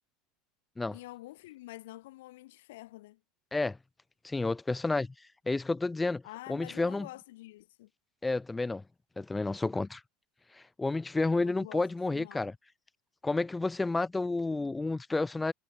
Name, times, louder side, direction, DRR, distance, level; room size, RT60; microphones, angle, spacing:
voice 1, 0.9-3.2 6.2-7.9 11.3-12.5, left 17 dB, 75° left, 6.2 m, -48 dB
voice 2, 4.2-5.1 5.5-6.2 6.5-7.1 8.2-8.8 9.2-10.0 10.5-12.5 13.2-15.5, left 3 dB, 15° left, 3.9 m, -30 dB
hypercardioid pair, 85°, 0 cm